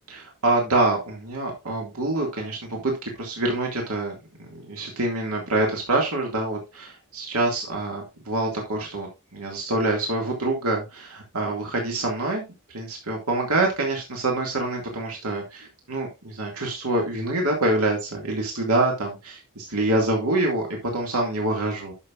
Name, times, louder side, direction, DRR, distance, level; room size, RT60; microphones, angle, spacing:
voice 1, 0.1-4.1 4.5-12.4 12.7-21.9, right 2 dB, 85° right, 0 dB, 2.4 m, -26 dB
11.0 x 6.7 x 2.6 m, 0.25 s
head